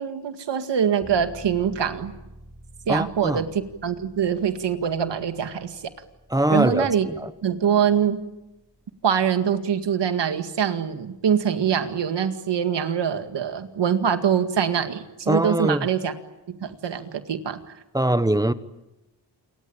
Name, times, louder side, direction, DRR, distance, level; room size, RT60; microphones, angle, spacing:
voice 1, 0.0-2.1 2.9-5.8 6.5-7.1 7.4-8.2 9.0-16.1 16.5-17.7, right 8 dB, 90° right, 2.1 m, -24 dB
sound 1, 1.0-11.6, right 1 dB, 10° left, 6.5 m, -50 dB
voice 2, 2.9-3.4 6.3-7.1 15.3-15.9 17.9-18.5, right 1 dB, 10° right, 1.2 m, -22 dB
28.5 x 24.0 x 8.8 m
wide cardioid pair, 105°, 41 cm